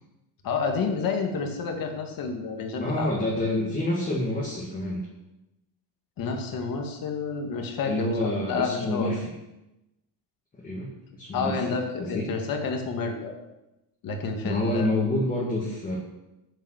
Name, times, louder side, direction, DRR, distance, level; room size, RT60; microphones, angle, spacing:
voice 1, 0.4-3.1 6.2-9.1 11.3-13.4 14.0-14.9, left 4 dB, 45° left, 4 dB, 2.1 m, -29 dB
voice 2, 2.8-5.0 7.9-9.3 10.6-10.9 11.2-11.6 12.0-12.3 14.4-16.0, left 1 dB, 15° left, -4 dB, 2.1 m, -27 dB
10.0 x 9.2 x 6.6 m, 0.94 s
cardioid pair, 175°, 49 cm